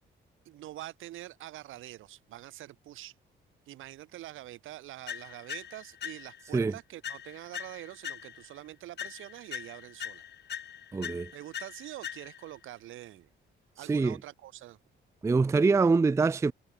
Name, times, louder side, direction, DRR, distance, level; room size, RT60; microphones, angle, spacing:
voice 1, 0.5-3.1 3.7-10.2 11.3-13.3 13.8-14.8, right 14 dB, 85° right, 5.2 m, -45 dB
sound 1, 5.1-6.6 7.0-8.6 9.0-12.6, left 9 dB, 60° left, 2.3 m, -42 dB
voice 2, 10.9-11.3 13.9-14.2 15.2-16.5, right 4 dB, 15° right, 0.4 m, -24 dB
cardioid pair, 90°, 20 cm